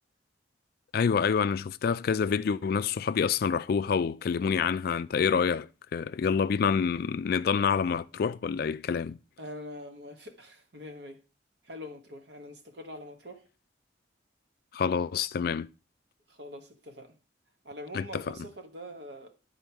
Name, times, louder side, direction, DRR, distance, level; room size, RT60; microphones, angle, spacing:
voice 1, 0.9-9.2 14.7-15.7 17.9-18.2, left 6 dB, 55° left, 0.3 m, -27 dB
voice 2, 9.4-11.2 11.6-13.4 16.3-17.1 17.6-19.3, left 1 dB, 65° right, 1.2 m, -44 dB
9.8 x 4.3 x 4.6 m
head